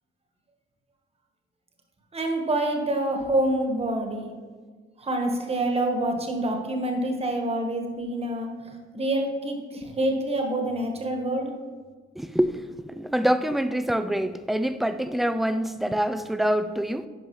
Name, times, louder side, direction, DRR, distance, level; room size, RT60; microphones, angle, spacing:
voice 1, 2.1-4.2 5.0-11.5, right 1 dB, 30° right, 1.3 m, -27 dB
voice 2, 12.2-17.1, equal, ahead, 0.3 m, -25 dB
10.5 x 5.2 x 3.2 m
cardioid pair, 90°, 20 cm